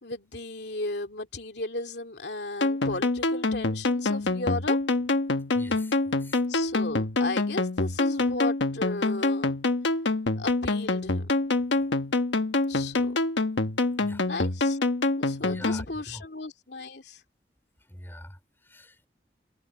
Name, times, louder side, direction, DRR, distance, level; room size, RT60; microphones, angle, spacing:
voice 1, 0.0-4.8 6.5-9.5 10.4-11.5 12.7-13.1 14.2-14.8 15.2-17.2, left 2 dB, 65° left, 2.6 m, -35 dB
sound 1, 2.6-15.8, left 2 dB, 85° left, 1.3 m, -26 dB
voice 2, 5.5-6.4 14.0-14.2 15.4-16.2 17.9-19.1, left 1 dB, 10° left, 4.6 m, -44 dB
head